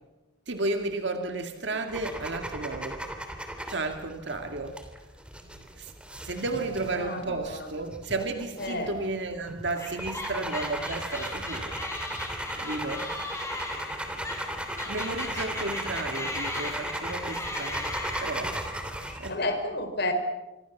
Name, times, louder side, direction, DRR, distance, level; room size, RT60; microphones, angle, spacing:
voice 1, 0.5-3.0 3.7-4.8 5.8-5.9 6.2-11.8 12.6-13.1 14.9-18.6 19.1-19.4, right 2 dB, 60° right, 5 dB, 2.1 m, -33 dB
sound 1, 1.9-19.3, right 1 dB, 5° right, 3.1 m, -36 dB
voice 2, 6.6-7.7 8.6-9.0 15.5-15.7 19.3-20.1, left 2 dB, 55° left, 7 dB, 4.3 m, -32 dB
sound 2, 9.8-18.8, left 2 dB, 15° left, 5.7 m, -38 dB
26.5 x 24.0 x 7.2 m, 1.0 s
head